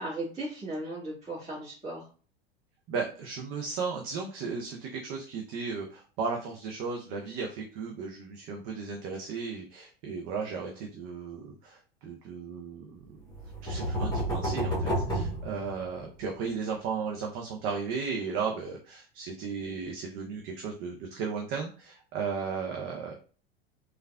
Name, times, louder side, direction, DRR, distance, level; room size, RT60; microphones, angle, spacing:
voice 1, 0.0-2.0, right 1 dB, 25° right, -8 dB, 1.4 m, -36 dB
voice 2, 2.9-13.2 13.6-23.1, right 5 dB, 45° right, 1 dB, 0.6 m, -35 dB
sound 1, 13.3-16.2, equal, 10° left, 1.2 m, -30 dB
3.2 x 2.3 x 2.2 m, 0.39 s
hypercardioid pair, 85°, 30 cm